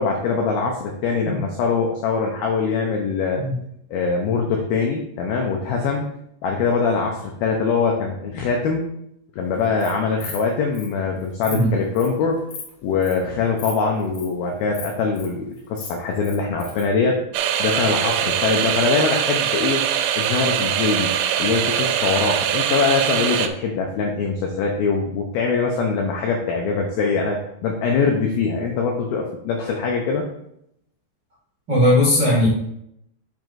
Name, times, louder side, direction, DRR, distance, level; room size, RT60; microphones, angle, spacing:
voice 1, 0.0-3.4 3.9-6.1 6.4-8.9 9.3-12.4 12.8-17.2 17.6-19.8 20.1-30.2, left 4 dB, 80° left, 1 dB, 2.2 m, -23 dB
Insect, 9.6-9.9 10.2-10.4 10.7-10.9 11.2-11.6 11.9-12.2 12.5-12.7 13.0-13.2 13.6-13.7 14.0-14.3 14.7-15.3 15.6-16.8, left 6 dB, 60° left, 2.6 m, -36 dB
sound 1, 17.3-23.5, right 10 dB, 90° right, 3.0 m, -22 dB
voice 2, 31.7-32.5, left 1 dB, 40° right, -8 dB, 1.8 m, -17 dB
7.6 x 7.5 x 2.6 m, 0.74 s
omnidirectional pair, 5.4 m